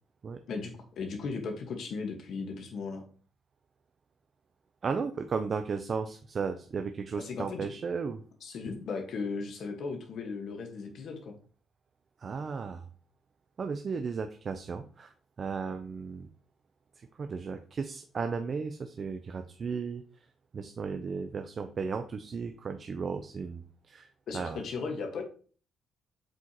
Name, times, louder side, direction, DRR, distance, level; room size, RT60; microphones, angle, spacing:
voice 1, 0.5-3.0 7.2-7.7 8.4-11.4 24.3-25.2, left 4 dB, 65° left, 4 dB, 1.4 m, -36 dB
voice 2, 4.8-8.2 8.7-8.8 12.2-12.8 13.6-16.3 17.0-20.3 20.5-24.1 24.3-24.6, right 5 dB, 45° right, 7 dB, 0.6 m, -35 dB
7.7 x 4.9 x 2.9 m, 0.41 s
cardioid pair, 90°, 0 cm